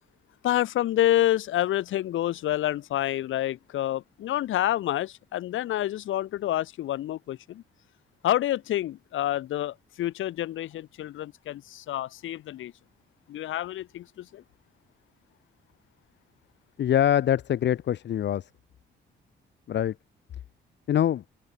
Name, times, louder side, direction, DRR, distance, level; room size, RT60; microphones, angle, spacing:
voice 1, 0.4-7.6 8.2-12.7 13.3-14.4, left 13 dB, 80° left, 4.6 m, -28 dB
voice 2, 16.8-18.5 19.7-19.9 20.9-21.2, left 10 dB, 65° left, 1.5 m, -24 dB
open air
cardioid pair, 90°, 20 cm